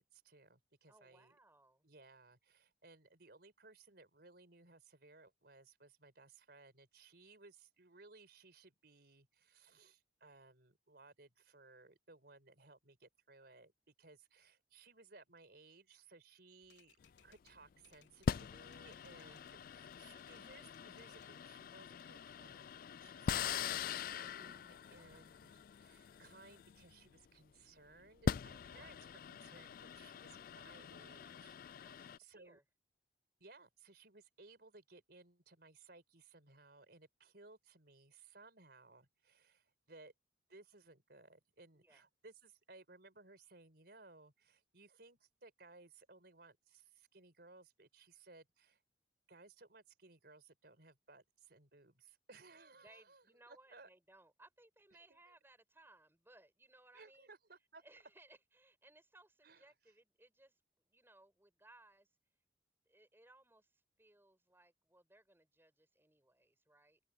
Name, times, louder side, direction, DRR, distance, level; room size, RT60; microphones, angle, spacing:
voice 1, 0.0-1.4 1.8-13.7 14.0-17.0 17.2-31.6 31.9-32.6 33.4-40.1 40.5-48.8 49.3-53.9 55.1-55.2 56.9-57.8 59.4-59.7, right 3 dB, 60° right, 4.8 m, -61 dB
voice 2, 0.9-1.9 19.0-19.4 23.5-23.6 24.9-25.3 28.7-28.9 31.8-32.0 32.3-32.6 41.7-42.0 52.8-57.3 57.8-62.1 62.8-67.0, right 2 dB, 15° right, 4.9 m, -65 dB
Typewriter, 16.6-19.6 19.8-21.4 21.8-22.8, left 8 dB, 80° left, 3.9 m, -71 dB
sound 1, 17.0-17.3 18.3-27.3 28.0-32.2, left 7 dB, 50° left, 0.3 m, -43 dB
open air
head